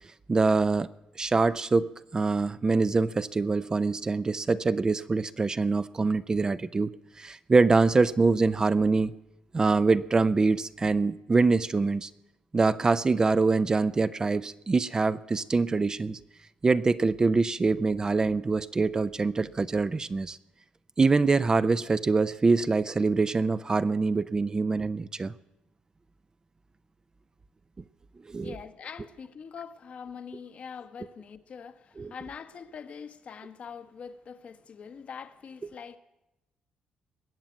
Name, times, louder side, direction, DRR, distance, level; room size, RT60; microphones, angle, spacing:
voice 1, 0.3-0.9 1.2-9.1 9.5-12.1 12.5-16.2 16.6-20.4 21.0-25.3 28.3-28.6 32.0-32.1, right 3 dB, 25° right, 0.5 m, -24 dB
voice 2, 28.4-36.0, left 6 dB, 55° left, 1.1 m, -43 dB
20.5 x 7.5 x 9.1 m
cardioid pair, 90°, 3 cm